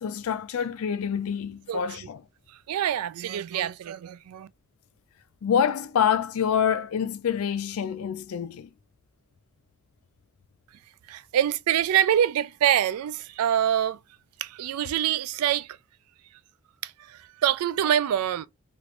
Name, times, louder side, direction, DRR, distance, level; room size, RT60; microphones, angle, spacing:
voice 1, 0.0-2.2 5.4-8.7, left 8 dB, 75° left, 0.4 m, -26 dB
voice 2, 1.7-2.1 2.5-4.5 11.1-14.0 14.4-15.8 16.8-18.5, right 10 dB, 85° right, 0.3 m, -25 dB
3.0 x 2.5 x 3.1 m
head